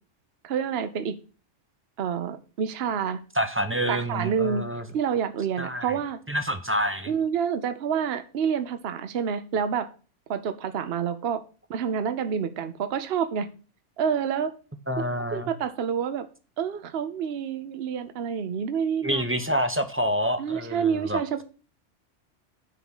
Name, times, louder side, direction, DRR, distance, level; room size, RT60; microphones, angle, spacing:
voice 1, 0.4-1.2 2.0-3.2 3.9-4.6 4.9-6.2 7.1-9.9 10.3-11.4 11.7-13.5 14.0-14.6 15.0-15.1 15.3-16.3 16.6-19.2 20.4-21.4, right 7 dB, 60° right, 10 dB, 0.9 m, -28 dB
voice 2, 3.3-4.8 5.6-5.9 6.3-7.1 14.9-15.5 19.0-21.2, equal, 15° right, 8 dB, 0.6 m, -27 dB
9.8 x 3.7 x 7.2 m, 0.36 s
omnidirectional pair, 1.3 m